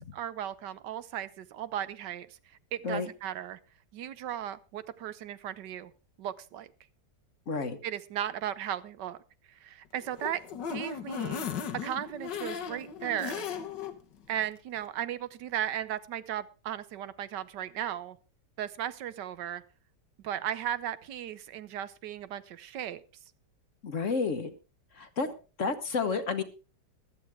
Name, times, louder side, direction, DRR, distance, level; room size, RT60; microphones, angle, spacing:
voice 1, 0.1-2.4 2.7-3.6 3.9-5.9 6.2-6.7 7.8-9.2 9.5-10.4 10.7-11.5 11.8-13.5 14.3-18.2 18.6-19.6 20.2-23.0, right 11 dB, 80° right, 15 dB, 1.4 m, -36 dB
voice 2, 7.5-7.8 23.8-24.5 24.9-25.3 25.6-26.4, left 4 dB, 50° left, 10 dB, 1.4 m, -30 dB
sound 1, 10.0-13.9 14.4-14.5 14.8-14.9, left 7 dB, 85° left, 1.9 m, -37 dB
15.0 x 12.5 x 3.5 m, 0.33 s
omnidirectional pair, 1.8 m